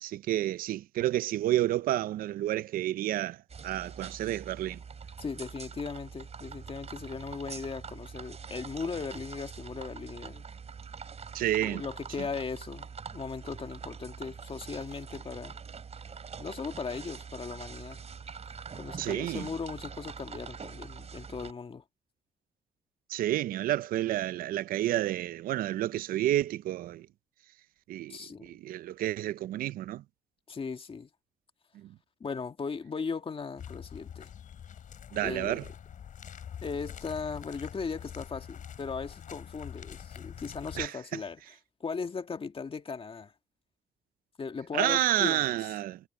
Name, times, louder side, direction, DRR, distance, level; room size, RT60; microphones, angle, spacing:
voice 1, 0.0-3.4 3.6-4.8 11.3-11.8 19.0-19.5 23.1-27.1 27.9-30.0 31.8-31.9 35.1-35.6 40.8-40.9 44.7-46.0, right 14 dB, 85° right, 0.5 m, -30 dB
sound 1, 3.5-21.5, right 6 dB, 50° right, 4.0 m, -44 dB
voice 2, 5.2-10.5 11.4-15.6 16.4-18.0 18.8-21.8 28.1-28.5 30.5-31.1 32.2-34.3 35.2-35.7 36.6-41.4 41.8-43.3 44.4-45.6, left 5 dB, 40° left, 2.0 m, -38 dB
sound 2, 33.6-40.9, left 8 dB, 65° left, 4.1 m, -45 dB
cardioid pair, 80°, 14 cm